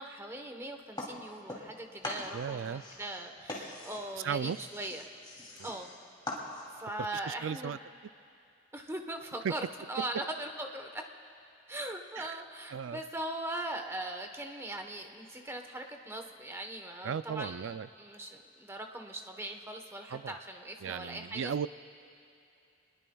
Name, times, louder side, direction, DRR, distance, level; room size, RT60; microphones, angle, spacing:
voice 1, 0.0-5.1 5.6-5.9 6.7-7.8 8.7-9.6 9.9-11.0 11.7-21.5, right 1 dB, 15° right, 4 dB, 1.1 m, -40 dB
sound 1, 1.0-1.8 2.0-6.9, left 2 dB, 25° left, 2.9 m, -42 dB
voice 2, 2.3-2.8 4.2-4.6 5.6-5.7 7.3-7.8 9.4-9.5 12.2-12.4 12.7-13.0 17.0-17.9 20.1-20.3 20.8-21.7, right 7 dB, 80° right, 15 dB, 0.4 m, -35 dB
29.0 x 21.0 x 2.3 m, 2.6 s
head